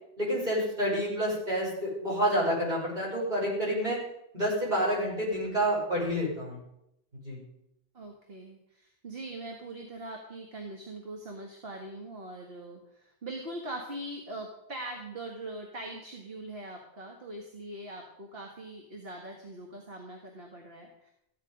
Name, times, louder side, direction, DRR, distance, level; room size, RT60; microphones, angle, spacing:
voice 1, 0.2-4.0 4.3-6.6 7.1-7.4, equal, 50° right, -5 dB, 6.1 m, -29 dB
voice 2, 7.9-21.1, right 1 dB, 65° right, 1 dB, 1.9 m, -42 dB
15.0 x 10.0 x 5.3 m, 0.81 s
omnidirectional pair, 1.1 m